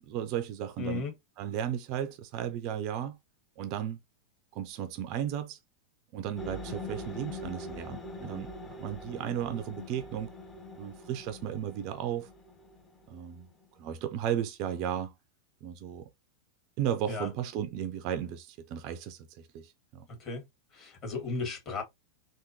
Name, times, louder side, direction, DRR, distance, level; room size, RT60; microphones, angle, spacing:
voice 1, 0.0-1.1 1.4-3.2 3.6-4.0 4.5-5.6 6.1-10.3 10.8-12.3 13.1-13.5 13.8-15.1 15.6-16.1 16.8-20.1, right 10 dB, 40° right, 0.5 m, -35 dB
voice 2, 0.8-1.1 17.1-17.3 20.2-20.4 20.7-21.8, left 3 dB, 35° left, 1.8 m, -35 dB
sound 1, 6.4-13.7, left 2 dB, 20° left, 0.8 m, -43 dB
3.5 x 2.5 x 2.8 m
figure-of-eight pair, 90°, 0 cm